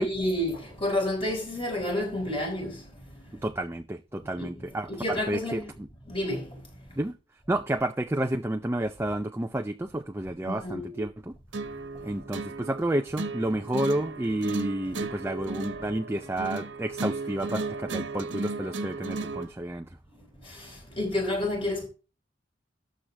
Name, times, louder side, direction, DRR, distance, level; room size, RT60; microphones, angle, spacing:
voice 1, 0.0-3.2 4.2-4.7 5.0-5.7 6.1-6.6 10.4-11.0 20.4-21.9, left 1 dB, 30° left, 5.1 m, -30 dB
voice 2, 3.4-5.9 7.0-7.2 7.5-11.3 12.0-19.9, right 1 dB, 15° right, 0.5 m, -30 dB
sound 1, 11.5-19.5, right 3 dB, 85° right, 1.3 m, -35 dB
13.0 x 7.6 x 3.4 m
head